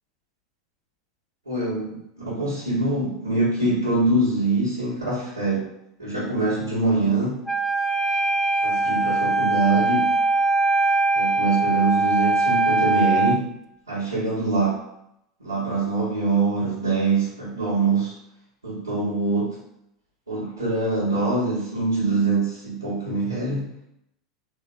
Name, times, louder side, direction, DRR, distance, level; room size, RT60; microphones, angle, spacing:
voice 1, 1.5-2.0 2.2-5.7 6.0-7.4 8.6-10.1 11.1-13.5 13.9-14.8 15.4-18.1 18.6-19.5 20.3-23.7, right 3 dB, 90° right, -12 dB, 1.3 m, -24 dB
Wind instrument woodwind instrument, 7.5-13.4, right 3 dB, 5° left, 0.3 m, -21 dB
3.9 x 2.2 x 3.4 m, 0.79 s
figure-of-eight pair, 85°, 2 cm